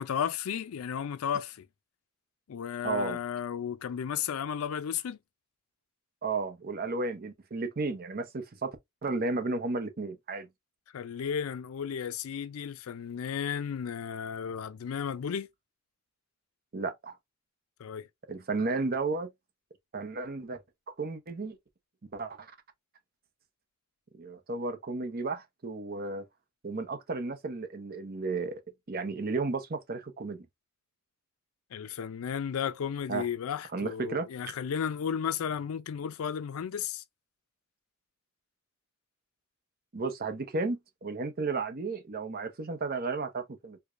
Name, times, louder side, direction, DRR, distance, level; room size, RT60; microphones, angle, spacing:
voice 1, 0.0-1.7 2.5-5.2 10.9-15.5 17.8-18.1 31.7-37.0, left 7 dB, 80° left, 0.4 m, -34 dB
voice 2, 2.8-3.2 6.2-8.8 9.0-10.5 16.7-17.1 18.3-19.3 19.9-20.6 21.0-21.6 22.1-22.5 24.1-26.2 26.6-28.6 28.9-30.5 33.1-33.3 33.7-34.3 39.9-43.8, right 3 dB, 45° right, 0.7 m, -33 dB
4.7 x 2.2 x 2.4 m
head